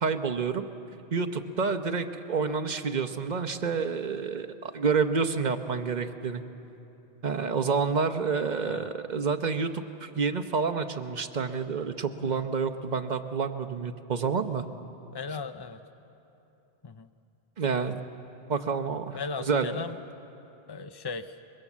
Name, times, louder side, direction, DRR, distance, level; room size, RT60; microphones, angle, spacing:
voice 1, 0.0-0.7 1.1-6.4 7.2-14.6 17.6-18.0 18.5-19.7, right 5 dB, 45° right, 7 dB, 0.9 m, -29 dB
voice 2, 15.1-15.8 16.8-17.1 19.1-20.0 20.7-21.4, left 4 dB, 40° left, 9 dB, 0.3 m, -37 dB
24.0 x 21.5 x 7.3 m, 3.0 s
omnidirectional pair, 1.1 m